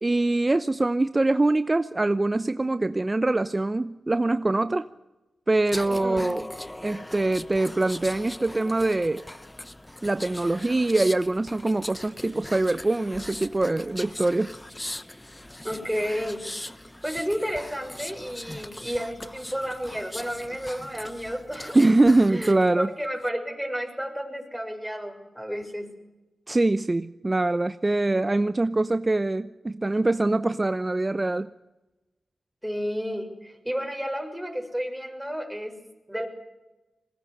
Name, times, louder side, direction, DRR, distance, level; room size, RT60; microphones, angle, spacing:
voice 1, 0.0-4.9 5.5-6.4 6.8-9.2 10.0-14.5 21.7-22.9 26.5-31.5, right 2 dB, 30° right, 12 dB, 0.8 m, -23 dB
sound 1, 5.6-22.6 23.0-23.3, left 1 dB, 15° left, 1.0 m, -40 dB
voice 2, 5.9-6.3 15.6-16.5 17.0-21.9 22.3-25.9 32.6-35.8 36.1-36.3, equal, 5° right, 4 dB, 6.4 m, -31 dB
22.0 x 18.5 x 10.0 m, 1.0 s
supercardioid pair, 45°, 0 cm